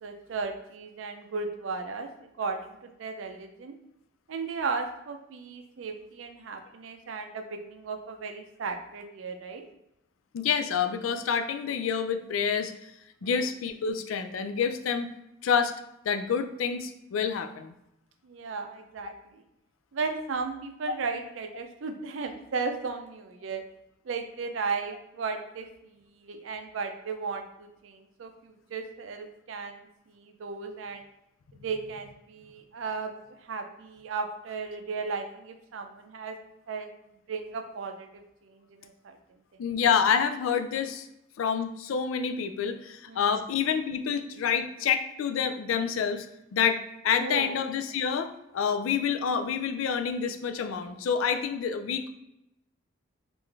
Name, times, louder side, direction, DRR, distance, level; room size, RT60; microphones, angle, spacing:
voice 1, 0.0-2.1 2.4-3.7 4.3-9.6 13.2-13.3 18.2-19.4 19.9-23.6 24.0-31.1 31.5-36.4 36.7-36.9 37.3-39.2 39.5-39.6 43.1-43.3 47.2-47.5, right 4 dB, 75° right, 6 dB, 0.4 m, -35 dB
voice 2, 10.3-12.7 13.2-15.1 15.4-15.7 16.0-17.7 39.6-41.1 41.4-46.3 46.5-52.1, left 7 dB, 85° left, 8 dB, 0.3 m, -28 dB
3.7 x 2.5 x 3.2 m, 0.85 s
head